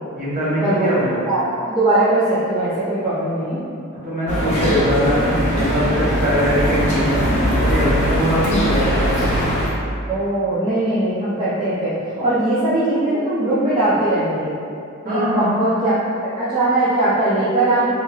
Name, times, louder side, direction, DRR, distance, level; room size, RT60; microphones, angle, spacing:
voice 1, 0.1-1.2 4.0-9.1 15.0-15.5, equal, 35° right, -10 dB, 0.9 m, -21 dB
voice 2, 1.3-3.6 10.1-14.5 15.0-15.9 16.2-17.8, right 2 dB, 20° right, -12 dB, 0.4 m, -20 dB
sound 1, 4.3-9.7, equal, 35° left, 0.5 m, -20 dB
2.9 x 2.8 x 2.3 m, 2.6 s
head